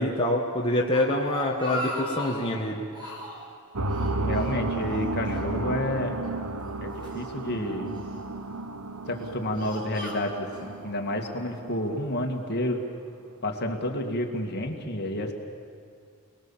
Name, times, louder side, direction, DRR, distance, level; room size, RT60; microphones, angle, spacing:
voice 1, 0.0-2.8, left 1 dB, 25° left, -2 dB, 1.6 m, -26 dB
Speech, 0.9-2.6 2.9-3.5 3.9-5.0 5.3-5.4 6.2-7.2 7.9-8.4 9.0-10.7, equal, 20° right, 4.9 m, -38 dB
sound 1, 3.7-12.4, right 2 dB, 80° right, 1.2 m, -33 dB
voice 2, 4.2-6.2 6.8-8.0 9.1-12.8 13.4-15.3, left 1 dB, 50° left, 3 dB, 2.3 m, -30 dB
28.0 x 20.0 x 7.4 m, 2.3 s
head